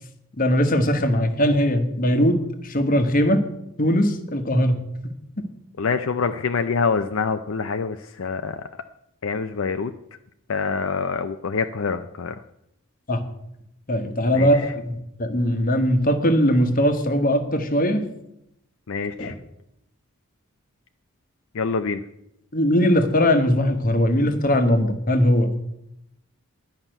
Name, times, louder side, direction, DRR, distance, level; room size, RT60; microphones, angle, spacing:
voice 1, 0.4-2.4 2.6-3.4 3.8-4.7 5.0-5.1 13.1-13.2 13.9-18.1 19.2-19.3 22.5-25.5, equal, 40° left, 8 dB, 1.2 m, -20 dB
voice 2, 5.8-8.6 9.2-9.9 10.5-12.3 14.3-14.7 18.9-19.3 21.5-22.0, left 5 dB, 70° left, 8 dB, 0.5 m, -25 dB
11.0 x 5.8 x 8.9 m, 0.79 s
head